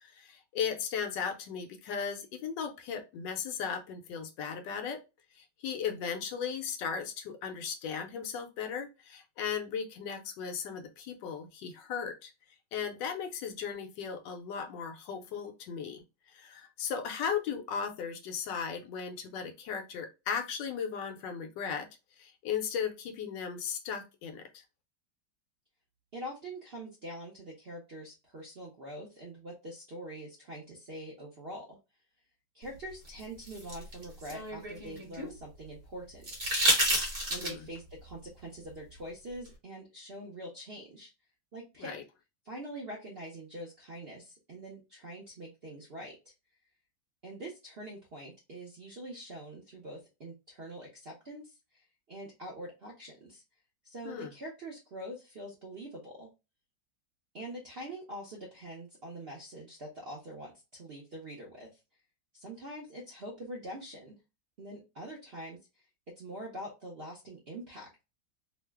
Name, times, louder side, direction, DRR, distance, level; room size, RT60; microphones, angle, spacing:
voice 1, 0.0-5.0 5.4-12.3 12.7-16.0 16.3-21.9 22.2-24.4 37.4-37.7 41.8-42.0 54.0-54.3, left 7 dB, 80° left, 6 dB, 1.3 m, -36 dB
voice 2, 26.1-31.8 32.5-36.7 37.3-41.1 41.5-41.9 42.4-46.2 47.2-53.4 53.8-56.3 57.3-61.8 62.3-64.2 64.6-65.8 66.2-68.0, right 1 dB, 60° right, -2 dB, 0.6 m, -44 dB
sound 1, 33.1-35.3 36.2-37.8 39.5-39.6, right 1 dB, 35° right, 1.0 m, -30 dB
3.1 x 2.0 x 3.3 m, 0.27 s
omnidirectional pair, 2.0 m